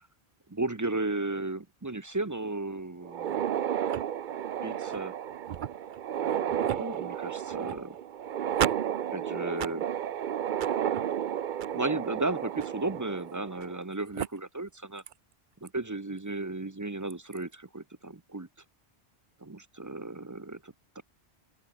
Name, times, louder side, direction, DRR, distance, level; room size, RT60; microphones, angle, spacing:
voice 1, 0.5-3.4 4.6-5.1 6.2-8.0 9.1-9.9 11.7-15.0 15.6-18.5 19.4-21.0, right 2 dB, 20° right, 0.7 m, -34 dB
sound 1, 3.0-13.8 14.2-14.3 15.1-15.2 15.7-15.8 17.1-17.4, right 9 dB, 55° right, 0.7 m, -32 dB
open air
omnidirectional pair, 1.1 m